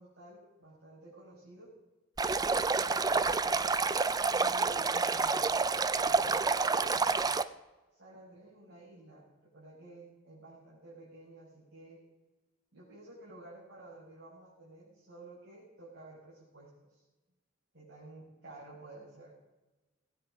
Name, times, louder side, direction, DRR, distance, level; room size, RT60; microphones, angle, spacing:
voice 1, 0.0-1.7 2.4-7.2 7.9-12.0 12.7-17.0 17.7-19.3, right 2 dB, 60° right, -8 dB, 5.4 m, -52 dB
Stream, 2.2-7.4, right 4 dB, 20° right, 0.4 m, -28 dB
19.5 x 9.2 x 5.1 m, 1.1 s
head